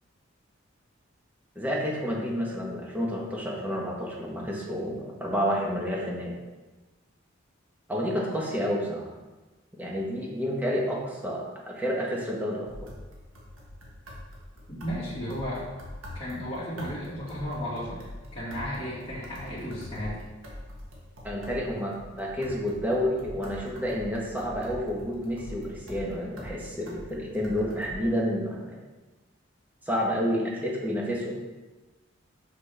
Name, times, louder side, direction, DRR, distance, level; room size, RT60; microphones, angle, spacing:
voice 1, 1.5-6.3 7.9-9.1 9.8-12.7 21.2-28.7 29.8-31.3, equal, 10° right, -3 dB, 1.1 m, -30 dB
sound 1, 12.7-27.9, left 1 dB, 90° right, 1.4 m, -44 dB
voice 2, 14.7-15.6 16.1-18.0 18.3-20.2, equal, 30° left, -9 dB, 1.9 m, -34 dB
6.1 x 5.8 x 3.3 m, 1.2 s
head